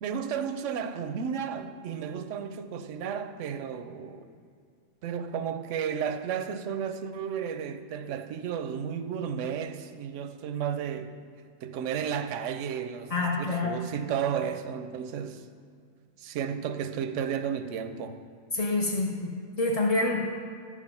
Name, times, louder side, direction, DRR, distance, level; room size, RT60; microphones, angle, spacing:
voice 1, 0.0-4.2 5.0-11.1 11.6-15.4 16.2-18.2, right 7 dB, 70° right, 0.8 m, -33 dB
voice 2, 13.1-13.7 18.5-19.3 19.6-20.3, left 2 dB, 40° left, 0.5 m, -27 dB
11.0 x 4.9 x 5.4 m
omnidirectional pair, 1.5 m